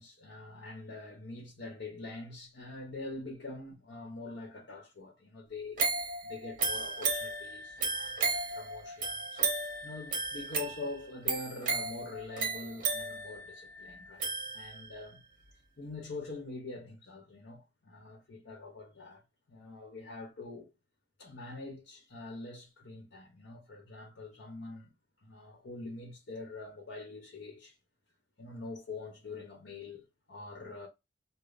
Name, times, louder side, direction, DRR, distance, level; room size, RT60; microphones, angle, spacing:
voice 1, 0.0-5.8 6.2-9.5 9.8-15.2 15.8-19.2 19.5-20.7 21.2-24.9 25.2-27.8 28.4-30.9, left 3 dB, 80° left, 1.0 m, -44 dB
sound 1, 5.8-15.0 15.5-15.6, right 4 dB, 45° right, 0.9 m, -34 dB
3.3 x 2.1 x 3.9 m
head